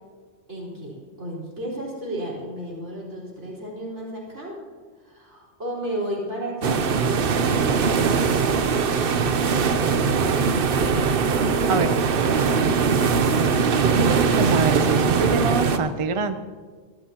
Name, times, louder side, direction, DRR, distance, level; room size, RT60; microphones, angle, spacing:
voice 1, 0.5-4.6 5.0-8.1, right 1 dB, 80° right, -5 dB, 4.8 m, -33 dB
sound 1, 6.6-15.8, right 5 dB, 55° right, 0.9 m, -21 dB
voice 2, 14.4-16.4, right 4 dB, 35° right, 9 dB, 0.5 m, -25 dB
23.5 x 13.5 x 2.9 m, 1.5 s
omnidirectional pair, 1.2 m